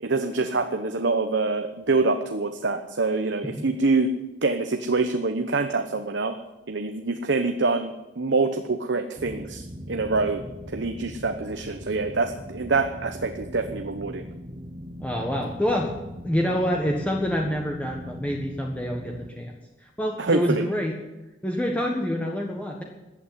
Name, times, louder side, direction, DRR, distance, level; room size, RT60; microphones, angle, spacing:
voice 1, 0.0-4.1 4.4-6.4 6.7-10.4 10.7-14.2 20.2-20.6, right 3 dB, 75° right, 7 dB, 1.0 m, -25 dB
sound 1, 9.2-19.3, equal, 30° right, 0.9 m, -40 dB
voice 2, 15.0-15.9 16.2-19.5 20.0-20.9 21.4-22.8, equal, 10° left, 0 dB, 1.4 m, -26 dB
14.5 x 8.7 x 9.6 m, 1.0 s
head